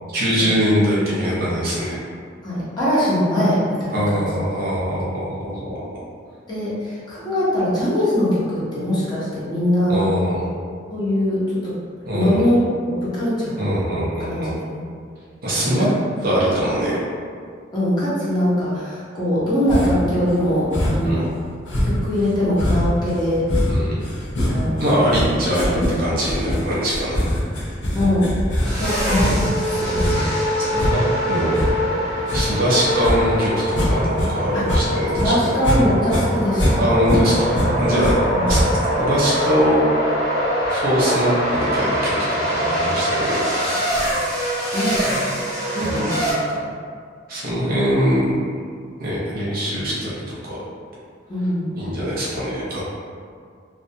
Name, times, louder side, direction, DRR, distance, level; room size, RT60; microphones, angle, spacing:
voice 1, 0.1-2.0 3.9-6.0 9.9-10.5 12.1-12.5 13.6-14.5 15.4-15.9 16.2-17.0 21.0-21.2 23.7-24.0 24.8-25.7 26.0-27.2 29.7-30.3 30.6-31.6 32.3-35.6 36.7-38.2 38.5-38.6 39.0-39.9 40.7-43.6 45.8-46.0 47.3-48.3 49.0-50.6 51.8-52.8, equal, 50° right, -7 dB, 0.6 m, -22 dB
voice 2, 2.4-4.2 6.5-10.1 10.9-11.7 12.1-12.7 13.0-13.6 14.3-14.5 15.5-15.7 17.7-21.2 21.8-23.4 24.5-25.0 25.7-25.9 27.9-28.3 28.8-30.3 34.5-34.6 35.2-36.8 38.3-38.6 44.7-45.3 45.7-46.3 46.5-46.7 51.3-51.7, left 1 dB, 20° left, -11 dB, 0.7 m, -22 dB
sound 1, 19.7-20.1 20.7-21.2 21.7-34.3 34.6-35.8 36.1-38.1 38.5-39.0, equal, 70° left, 0.6 m, -23 dB
sound 2, 28.6-46.3, equal, 20° right, 0.8 m, -23 dB
2.3 x 2.2 x 2.7 m, 2.1 s
head